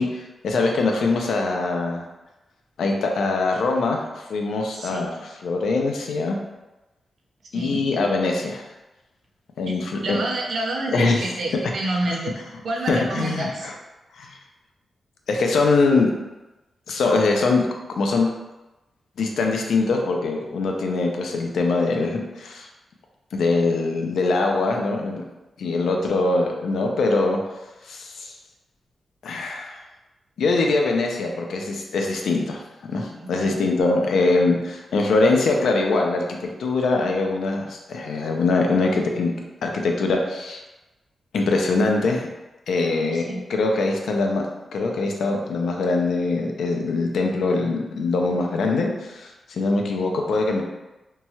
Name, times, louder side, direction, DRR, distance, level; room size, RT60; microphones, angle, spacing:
voice 1, 0.0-2.1 2.8-6.4 7.5-8.6 9.6-10.2 10.9-11.2 12.9-13.7 14.2-14.4 15.3-16.1 16.9-17.7 18.0-18.3 19.2-22.7 23.3-25.2 25.6-27.4 27.8-28.4 29.2-29.8 30.4-32.6 32.9-39.3 39.6-40.6 41.3-42.3 42.7-44.4 44.7-50.6, left 3 dB, 85° left, 2 dB, 0.4 m, -23 dB
voice 2, 4.7-5.1 7.5-7.8 10.0-13.7 26.2-26.3 33.2-33.6 43.1-43.4, right 2 dB, 60° right, 0 dB, 0.5 m, -28 dB
3.0 x 2.3 x 2.7 m, 1.0 s
wide cardioid pair, 105°, 0 cm